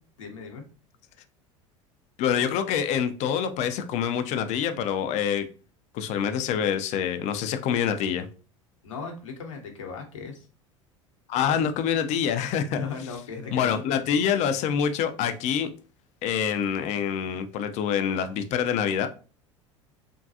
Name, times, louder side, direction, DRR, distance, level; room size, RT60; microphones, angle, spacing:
voice 1, 0.2-0.6 8.8-10.5 12.7-13.8, left 5 dB, 75° left, 2 dB, 0.8 m, -37 dB
voice 2, 2.2-5.5 5.9-8.3 11.3-12.8 13.5-15.7 16.2-19.1, left 8 dB, 45° left, 9 dB, 0.5 m, -26 dB
3.5 x 2.3 x 2.6 m, 0.37 s
figure-of-eight pair, 75°, 16 cm